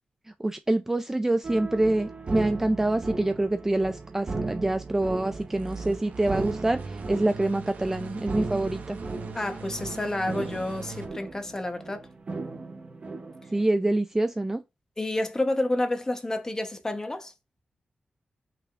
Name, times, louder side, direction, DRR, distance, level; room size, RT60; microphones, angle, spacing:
voice 1, 0.4-9.0 13.5-14.6, right 2 dB, 15° right, 0.3 m, -26 dB
sound 1, 1.4-13.6, right 3 dB, 40° right, 0.9 m, -36 dB
sound 2, 5.3-11.1, right 4 dB, 75° right, 0.8 m, -41 dB
voice 2, 9.3-12.0 15.0-17.3, left 1 dB, 20° left, 0.9 m, -29 dB
5.7 x 3.5 x 2.4 m
wide cardioid pair, 135°, 3 cm